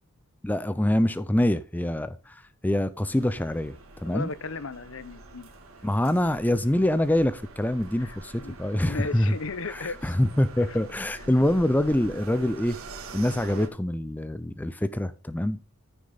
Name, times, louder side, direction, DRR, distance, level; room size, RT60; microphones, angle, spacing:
voice 1, 0.4-4.3 5.8-9.4 9.7-12.8 13.1-15.6, left 1 dB, 10° left, 0.4 m, -25 dB
sound 1, 3.0-13.7, right 3 dB, 70° right, 2.0 m, -45 dB
voice 2, 4.0-5.5 8.0-10.1 10.7-10.8 11.3-11.4, left 4 dB, 60° left, 0.8 m, -36 dB
14.0 x 6.3 x 3.9 m
head